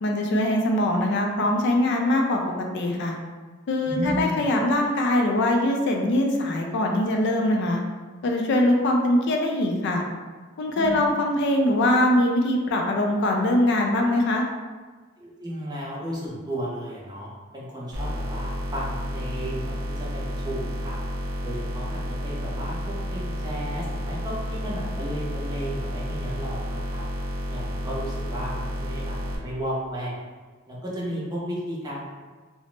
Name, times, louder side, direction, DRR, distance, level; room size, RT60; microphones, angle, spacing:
voice 1, 0.0-3.1 3.7-7.8 8.2-10.0 10.6-14.4, left 1 dB, 55° left, 1 dB, 0.4 m, -22 dB
voice 2, 3.9-4.4 10.7-11.0 15.2-27.0 27.5-30.2 30.7-32.0, equal, 20° right, -5 dB, 0.6 m, -34 dB
sound 1, 17.9-29.4, equal, 75° right, 0.6 m, -31 dB
2.9 x 2.0 x 3.1 m, 1.4 s
head